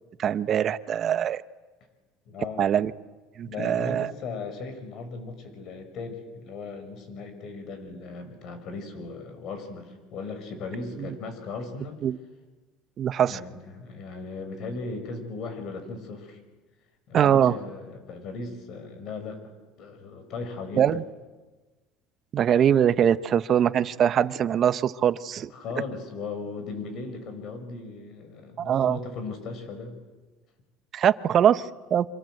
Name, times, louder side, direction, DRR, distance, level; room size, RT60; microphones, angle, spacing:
voice 1, 0.2-1.4 2.6-2.9 3.4-4.1 12.0-12.2 13.0-13.4 17.1-17.6 20.8-21.0 22.3-25.5 28.6-29.0 30.9-32.1, right 9 dB, 45° right, 14 dB, 1.0 m, -22 dB
voice 2, 2.3-2.7 3.4-12.0 13.3-16.4 17.1-19.4 19.8-20.9 25.5-30.0, left 4 dB, 60° left, 8 dB, 6.1 m, -37 dB
28.0 x 25.5 x 7.9 m, 1.3 s
supercardioid pair, 110°, 0 cm